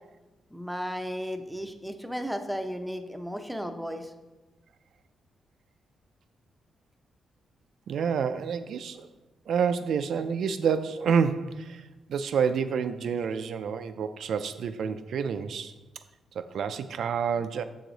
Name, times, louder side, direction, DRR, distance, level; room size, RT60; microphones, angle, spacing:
voice 1, 0.5-4.1, equal, ahead, 6 dB, 0.6 m, -34 dB
voice 2, 7.9-9.1 9.5-15.7 16.3-17.6, right 6 dB, 70° right, 10 dB, 0.3 m, -28 dB
6.9 x 4.7 x 3.9 m, 1.1 s
cardioid pair, 105°, 0 cm